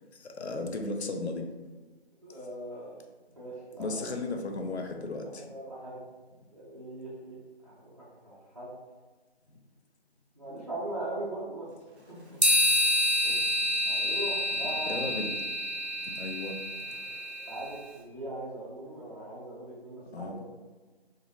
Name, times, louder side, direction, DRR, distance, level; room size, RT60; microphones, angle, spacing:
voice 1, 0.1-1.5 3.8-5.5 14.9-15.3 16.1-16.6 17.4-17.5 20.1-20.4, left 3 dB, 90° left, 3 dB, 0.5 m, -35 dB
voice 2, 2.2-2.9 3.4-4.0 5.2-6.0 6.5-7.4 7.6-7.9 8.2-8.7 10.3-11.7 12.1-12.4 13.2-13.5 13.9-15.0 17.5-20.5, right 1 dB, 30° right, -11 dB, 0.4 m, -40 dB
sound 1, 12.4-17.7, equal, 85° right, 0.9 m, -28 dB
2.4 x 2.0 x 2.7 m, 1.3 s
figure-of-eight pair, 155°, 32 cm